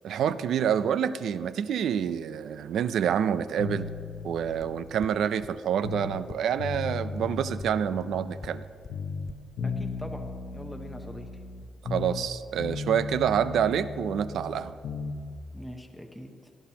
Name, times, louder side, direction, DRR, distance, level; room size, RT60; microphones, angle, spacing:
voice 1, 0.0-3.9 4.2-8.6 11.9-14.8, right 8 dB, 80° right, 13 dB, 0.5 m, -27 dB
sound 1, 3.6-6.3 6.6-8.6 8.9-12.3 12.6-15.2, left 4 dB, 85° left, 1.0 m, -36 dB
sound 2, 4.6-4.7 5.0-5.1 5.4-5.5 5.8-5.9 6.3-6.4 6.7-6.8 7.2-7.3 7.6-7.7 8.0-8.1 8.4-8.5 8.8-8.9 9.3-9.4, left 5 dB, 30° left, 0.4 m, -42 dB
voice 2, 9.6-11.4 15.5-16.5, equal, ahead, 2 dB, 0.7 m, -42 dB
18.5 x 12.0 x 2.9 m, 2.1 s
wide cardioid pair, 175°, 0 cm